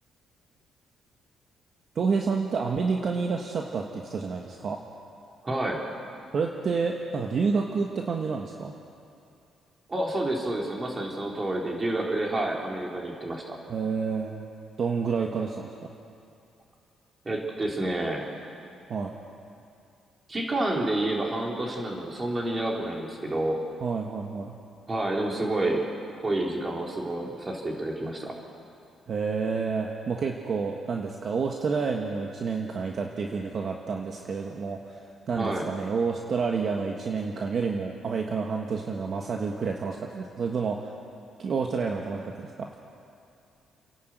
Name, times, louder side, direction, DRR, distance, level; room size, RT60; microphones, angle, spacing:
voice 1, 1.9-4.8 6.3-8.7 13.7-14.4 14.8-15.7 18.9-19.1 23.8-24.5 29.1-35.0 35.3-40.9 41.4-42.7, right 5 dB, 50° right, 1 dB, 1.5 m, -29 dB
voice 2, 5.4-5.8 9.9-13.6 17.2-18.2 20.3-23.6 24.9-25.8 26.2-28.3 35.3-35.7, right 1 dB, 25° right, -1 dB, 4.2 m, -29 dB
29.5 x 11.5 x 8.0 m, 2.5 s
cardioid pair, 90°, 0 cm